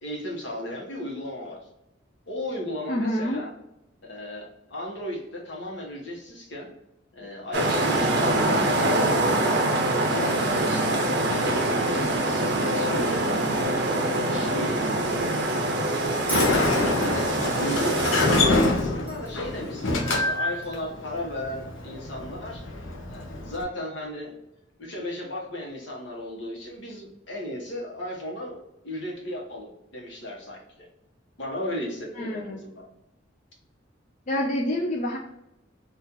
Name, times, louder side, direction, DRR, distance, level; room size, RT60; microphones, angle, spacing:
voice 1, 0.0-1.6 2.3-3.5 4.0-6.7 7.1-9.5 10.1-13.5 13.8-22.6 23.1-24.3 24.8-28.6 28.8-30.9 31.4-32.8, left 1 dB, 70° left, -1 dB, 0.9 m, -35 dB
voice 2, 2.9-3.4 32.2-32.6 34.3-35.2, left 1 dB, 40° left, -2 dB, 0.4 m, -27 dB
sound 1, 7.5-18.4, right 1 dB, 60° right, 0.6 m, -24 dB
Sliding door, 16.1-23.6, left 2 dB, 85° left, 0.6 m, -26 dB
Bell, 16.3-19.5 20.6-20.7, right 2 dB, 10° right, 0.5 m, -38 dB
2.8 x 2.4 x 3.7 m, 0.88 s
head